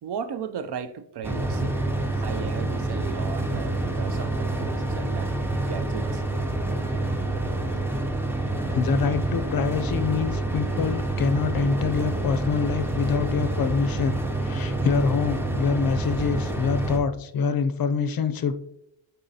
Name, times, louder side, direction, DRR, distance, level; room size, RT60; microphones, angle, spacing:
voice 1, 0.0-1.8 2.2-5.3 5.7-6.2, right 8 dB, 60° right, 0.5 m, -35 dB
sound 1, 1.2-17.0, right 2 dB, 5° right, 0.4 m, -27 dB
voice 2, 8.7-18.5, left 6 dB, 50° left, 0.5 m, -25 dB
9.0 x 4.0 x 2.7 m
wide cardioid pair, 175°, 45 cm